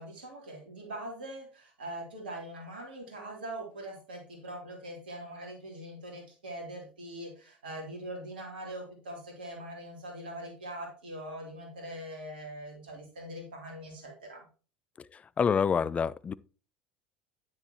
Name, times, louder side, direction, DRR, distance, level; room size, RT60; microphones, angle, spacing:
voice 1, 0.0-14.5, right 1 dB, 75° right, 3.1 m, -42 dB
voice 2, 15.1-16.3, left 6 dB, 25° left, 0.4 m, -27 dB
9.8 x 7.4 x 2.9 m
figure-of-eight pair, 70°, 5 cm